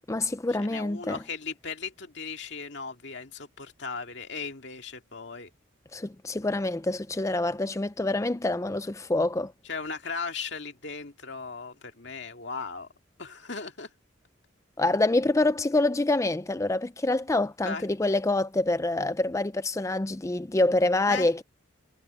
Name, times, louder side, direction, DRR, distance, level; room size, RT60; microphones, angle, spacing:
voice 1, 0.0-1.2 5.9-9.5 14.8-21.4, left 2 dB, 15° left, 0.4 m, -26 dB
voice 2, 0.6-5.5 9.7-12.9 13.2-13.9 17.6-17.8 21.1-21.3, left 5 dB, 60° left, 2.2 m, -37 dB
head